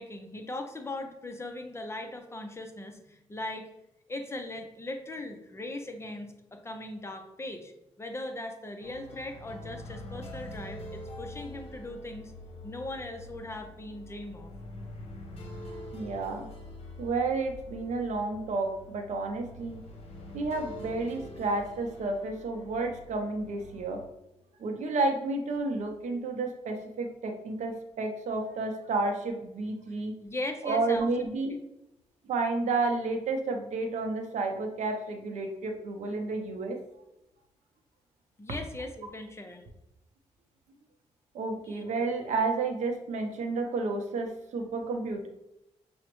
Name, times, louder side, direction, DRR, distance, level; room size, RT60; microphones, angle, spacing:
voice 1, 0.0-3.7 4.1-7.7 8.0-12.3 12.6-14.5 30.2-31.0 31.5-31.6 38.4-39.6 41.7-41.8, left 2 dB, 20° left, 5 dB, 0.5 m, -39 dB
sound 1, 8.8-24.1, left 1 dB, 55° left, 0.9 m, -45 dB
voice 2, 15.9-16.5 17.0-19.8 20.3-24.0 24.6-30.1 30.6-31.6 32.2-36.8 41.3-45.3, right 3 dB, 80° right, 4 dB, 0.5 m, -31 dB
5.8 x 2.1 x 3.0 m, 0.88 s
cardioid pair, 95°, 12 cm